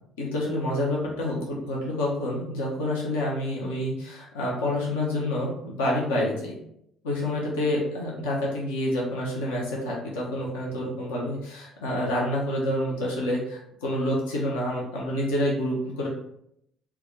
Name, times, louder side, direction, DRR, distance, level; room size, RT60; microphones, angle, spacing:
voice 1, 0.2-6.6 7.0-16.1, left 1 dB, 75° left, -3 dB, 0.7 m, -28 dB
3.5 x 2.3 x 3.4 m, 0.74 s
figure-of-eight pair, 50°, 0 cm